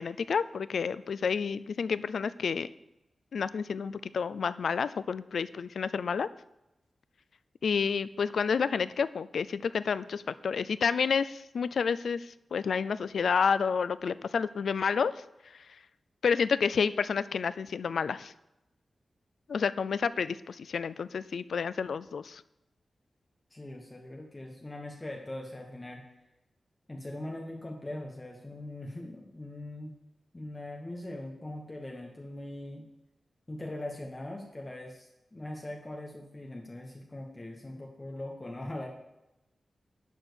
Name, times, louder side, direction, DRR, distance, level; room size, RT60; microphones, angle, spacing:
voice 1, 0.0-2.7 3.3-6.3 7.6-15.1 16.2-18.3 19.5-22.4, left 6 dB, 80° left, 15 dB, 0.4 m, -30 dB
voice 2, 23.5-26.0 26.9-29.9 30.3-32.8 33.5-38.9, left 1 dB, 25° left, 0 dB, 1.2 m, -41 dB
12.0 x 4.4 x 8.1 m, 0.94 s
wide cardioid pair, 95°, 0 cm